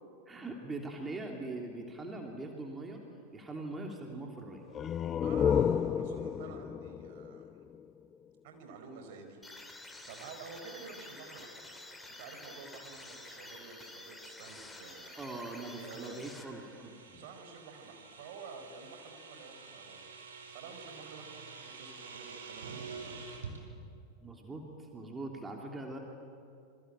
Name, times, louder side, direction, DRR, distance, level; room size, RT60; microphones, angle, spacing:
voice 1, 0.3-3.0 3.3-4.6 15.2-17.2 24.2-26.0, right 2 dB, 15° right, 1 dB, 3.1 m, -42 dB
sound 1, 4.7-8.3, left 8 dB, 25° left, 0.6 m, -32 dB
voice 2, 5.2-7.6 8.4-9.4 10.1-11.7 12.1-16.2 17.1-20.1 20.5-23.3, right 5 dB, 50° right, 5 dB, 4.7 m, -50 dB
sound 2, 9.4-16.9, left 2 dB, 5° left, 2.8 m, -50 dB
sound 3, 14.8-23.6, right 5 dB, 65° right, 4.7 m, -49 dB
27.5 x 24.5 x 9.0 m, 2.5 s
figure-of-eight pair, 90°, 0 cm